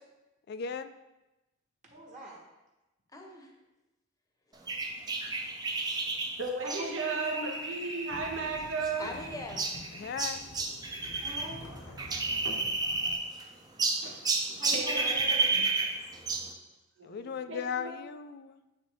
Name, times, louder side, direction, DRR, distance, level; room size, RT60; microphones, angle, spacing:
voice 1, 0.5-0.9 9.9-10.5 17.0-18.6, left 6 dB, 55° left, 12 dB, 0.3 m, -37 dB
voice 2, 1.9-2.4 6.6-7.4 11.2-11.7 14.6-15.0 15.3-15.5, right 1 dB, 40° right, -3 dB, 1.2 m, -42 dB
voice 3, 3.1-3.5 5.1-5.3 9.0-9.6 14.5-16.1, left 1 dB, 20° left, 1 dB, 0.8 m, -45 dB
sound 1, 4.7-11.5 11.8-13.4 13.8-16.5, right 3 dB, 20° right, 0.5 m, -31 dB
voice 4, 6.4-9.1 14.0-14.4 14.7-15.5 17.0-17.9, right 3 dB, 75° right, 0 dB, 1.0 m, -35 dB
sound 2, 8.1-13.2, left 1 dB, 80° left, 0.9 m, -47 dB
8.6 x 3.3 x 3.4 m, 1.0 s
head